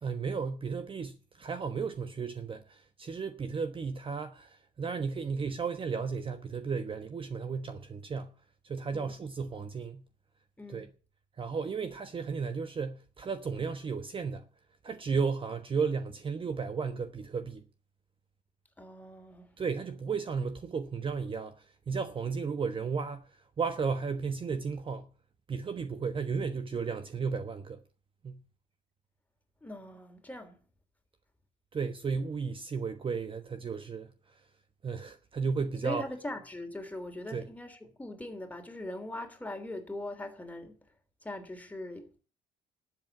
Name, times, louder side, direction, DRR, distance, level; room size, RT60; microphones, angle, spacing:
voice 1, 0.0-8.3 8.6-10.0 10.7-10.9 11.4-14.5 14.8-17.6 19.6-25.1 25.5-27.8 28.2-28.4 31.7-34.4 34.8-36.0 37.3-37.5, right 5 dB, 30° right, 1.2 m, -34 dB
voice 2, 10.6-10.9 18.8-19.5 29.6-30.6 35.8-40.8 41.2-42.2, left 1 dB, 10° left, 3.2 m, -41 dB
12.5 x 7.9 x 9.7 m
cardioid pair, 110°, 17 cm